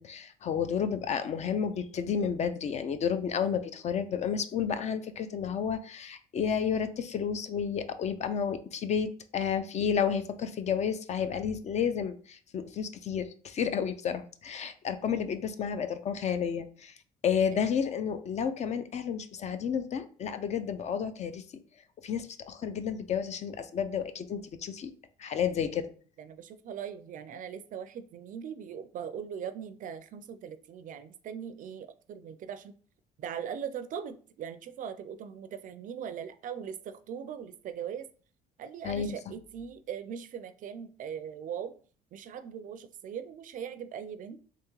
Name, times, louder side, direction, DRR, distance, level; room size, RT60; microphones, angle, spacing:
voice 1, 0.0-16.9 17.2-21.4 22.0-24.9 25.2-25.9 38.8-39.3, left 7 dB, 40° left, 11 dB, 0.4 m, -31 dB
voice 2, 26.2-32.7 33.2-38.1 38.6-41.7 42.1-44.4, right 8 dB, 50° right, 11 dB, 0.4 m, -40 dB
3.5 x 2.8 x 3.0 m, 0.43 s
cardioid pair, 110°, 17 cm